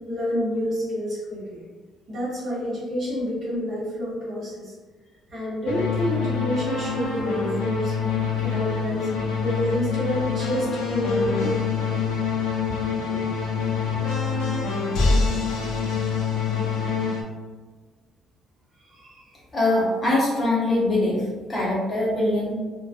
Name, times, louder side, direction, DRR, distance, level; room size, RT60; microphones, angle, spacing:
voice 1, 0.1-1.6 2.1-4.7 5.3-8.0 8.4-9.1 9.4-11.5 13.1-13.6 18.9-19.3, equal, 30° right, -8 dB, 0.9 m, -28 dB
sound 1, 5.7-17.2, left 5 dB, 85° left, 0.4 m, -25 dB
voice 2, 19.5-21.2 21.5-22.5, left 2 dB, 20° left, -6 dB, 0.7 m, -22 dB
2.4 x 2.2 x 2.4 m, 1.3 s
cardioid pair, 175°, 0 cm